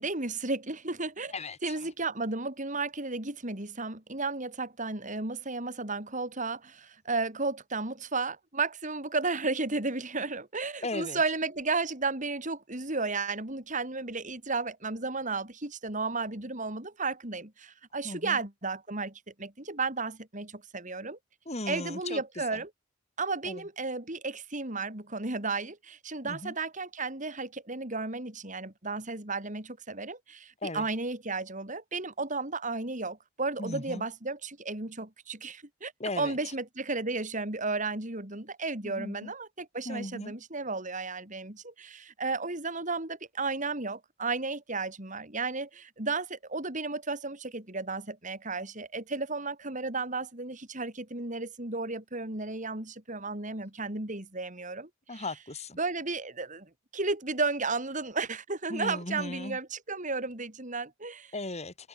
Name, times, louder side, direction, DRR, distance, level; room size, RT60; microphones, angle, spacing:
voice 1, 0.0-1.3 1.6-21.2 21.7-22.7 23.2-55.2 55.8-61.3, right 3 dB, 40° right, 4.0 m, -33 dB
voice 2, 1.3-1.7 10.8-11.2 18.0-18.4 21.5-22.2 23.4-23.6 26.2-26.5 30.6-30.9 33.6-34.0 36.0-36.4 38.8-39.3 39.8-40.3 55.1-55.8 58.7-59.6 61.3-61.9, left 2 dB, 35° left, 4.8 m, -37 dB
head